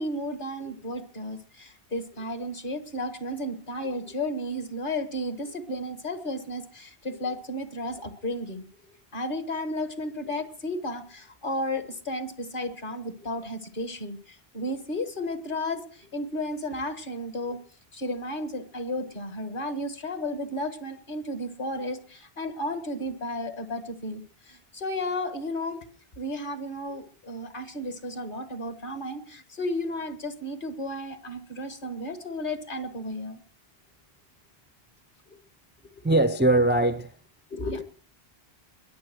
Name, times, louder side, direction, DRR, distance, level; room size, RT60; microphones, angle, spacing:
voice 1, 0.0-8.7 9.1-17.6 17.9-25.8 26.2-33.4 37.5-37.8, left 1 dB, 55° left, 1.8 m, -33 dB
voice 2, 36.0-37.2, right 2 dB, 15° right, 0.4 m, -21 dB
21.0 x 7.2 x 6.2 m
omnidirectional pair, 1.0 m